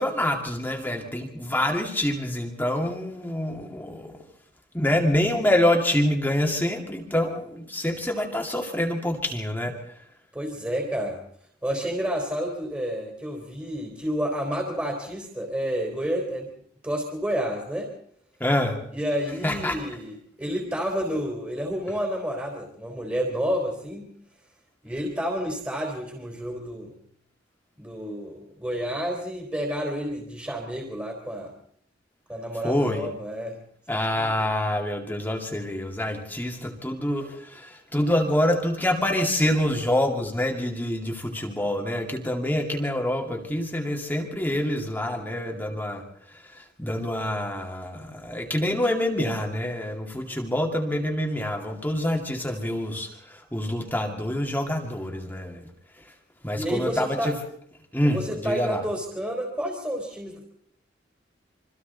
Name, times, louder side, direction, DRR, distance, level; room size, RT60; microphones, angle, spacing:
voice 1, 0.0-4.1 4.7-9.8 18.4-18.8 19.4-19.8 32.6-33.1 33.9-46.0 46.3-55.7 56.4-57.4 57.9-58.8, left 1 dB, 10° left, 1 dB, 2.4 m, -26 dB
voice 2, 10.3-11.2 11.6-16.5 16.8-17.9 18.9-24.1 24.8-27.0 27.8-31.5 32.3-33.6 34.1-34.3 56.5-57.3 58.0-60.4, equal, 10° right, 1 dB, 3.7 m, -30 dB
27.5 x 24.0 x 4.1 m, 0.65 s
head